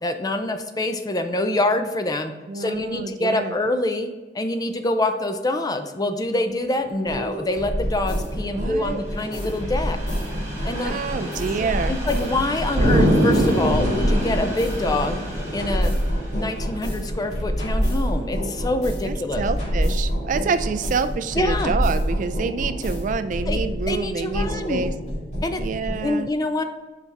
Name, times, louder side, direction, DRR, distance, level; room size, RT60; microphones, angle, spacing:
voice 1, 0.0-10.0 10.6-11.0 11.9-15.2 15.5-16.0 16.3-19.5 21.3-21.8 23.5-23.6 23.9-24.8 25.4-25.6 26.0-26.6, left 2 dB, 20° left, 7 dB, 0.4 m, -25 dB
voice 2, 2.5-3.6 8.5-9.0 10.8-12.0 19.0-24.9 25.6-26.3, right 5 dB, 45° right, 11 dB, 0.3 m, -27 dB
Train, 6.5-19.7 20.3-20.5, equal, 15° right, 1.8 m, -38 dB
sound 1, 7.1-26.0, equal, 40° left, 2.1 m, -27 dB
Explosion, 12.8-15.4, equal, 90° right, 1.4 m, -21 dB
5.7 x 4.7 x 4.0 m, 1.2 s
head